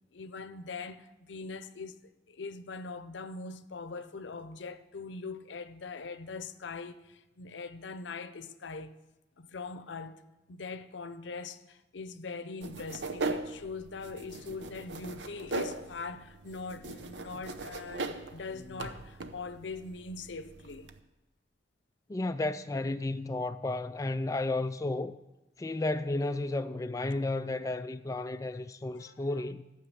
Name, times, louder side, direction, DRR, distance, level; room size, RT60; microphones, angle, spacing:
voice 1, 0.1-8.9 9.4-10.2 10.5-20.9 27.1-27.2 28.9-29.4, left 4 dB, 85° left, 0.7 m, -42 dB
sound 1, 12.6-21.0, right 3 dB, 80° right, 0.8 m, -40 dB
voice 2, 22.1-25.2 25.6-29.6, left 2 dB, 20° left, 0.3 m, -33 dB
12.5 x 6.7 x 7.8 m
head